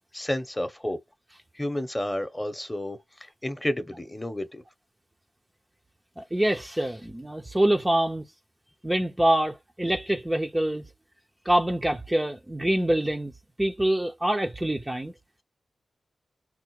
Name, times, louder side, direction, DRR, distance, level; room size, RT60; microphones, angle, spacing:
voice 1, 0.1-1.0 1.5-4.6, left 1 dB, 15° left, 0.8 m, -31 dB
voice 2, 6.2-8.2 8.8-10.8 11.5-13.3 13.6-15.1, right 1 dB, 20° right, 0.5 m, -25 dB
3.4 x 2.1 x 3.1 m
cardioid pair, 45°, 0 cm